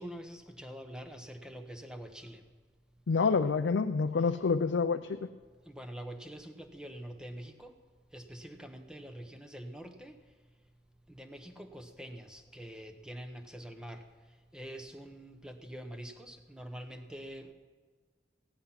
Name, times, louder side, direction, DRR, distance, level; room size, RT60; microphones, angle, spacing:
voice 1, 0.0-2.4 5.6-7.8 8.1-10.2 11.1-17.5, equal, 5° right, 7 dB, 0.8 m, -45 dB
voice 2, 3.1-5.2, left 4 dB, 90° left, 8 dB, 0.5 m, -27 dB
15.0 x 10.5 x 5.8 m, 1.5 s
head